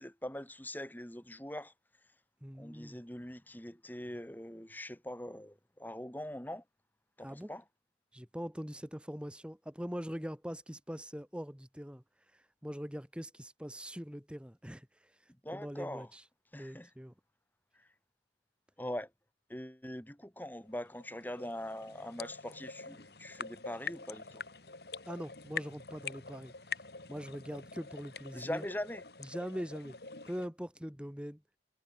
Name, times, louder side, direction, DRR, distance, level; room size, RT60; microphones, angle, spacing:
voice 1, 0.0-1.7 2.6-6.6 7.2-7.6 15.4-16.1 16.5-16.9 17.8-17.9 18.8-19.1 19.5-24.4 28.3-29.0, left 1 dB, 10° left, 2.4 m, -42 dB
voice 2, 2.4-3.0 7.2-7.5 8.1-16.3 16.6-17.1 25.1-28.6 29.2-30.0 30.3-31.4, equal, 5° right, 1.8 m, -43 dB
sound 1, 20.7-30.5, left 5 dB, 60° left, 2.7 m, -45 dB
head